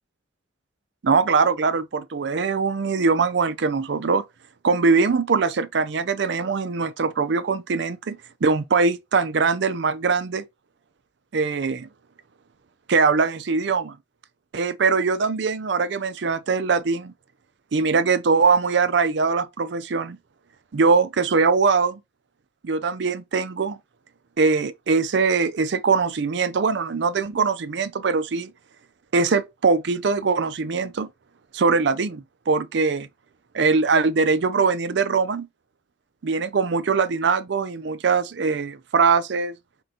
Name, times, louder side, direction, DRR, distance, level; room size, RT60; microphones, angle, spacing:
voice 1, 1.0-4.2 4.6-10.4 11.3-11.9 12.9-14.0 14.5-17.1 17.7-20.2 20.7-22.0 22.6-23.8 24.4-28.5 29.1-31.1 31.5-33.1 33.5-35.5 36.2-39.5, right 4 dB, 60° right, 0.5 m, -22 dB
4.3 x 3.8 x 2.8 m
head